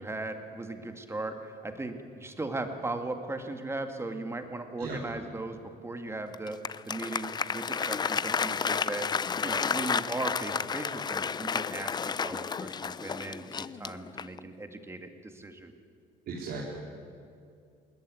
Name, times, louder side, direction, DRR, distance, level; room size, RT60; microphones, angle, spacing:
voice 1, 0.0-5.6 5.8-6.6 6.9-9.1 9.4-15.7, right 2 dB, 15° right, 6 dB, 2.0 m, -37 dB
Applause, 6.3-14.5, left 6 dB, 25° left, 0.5 m, -31 dB
voice 2, 16.3-16.7, right 4 dB, 65° right, -3 dB, 3.7 m, -36 dB
21.0 x 18.5 x 9.4 m, 2.3 s
cardioid pair, 110°, 17 cm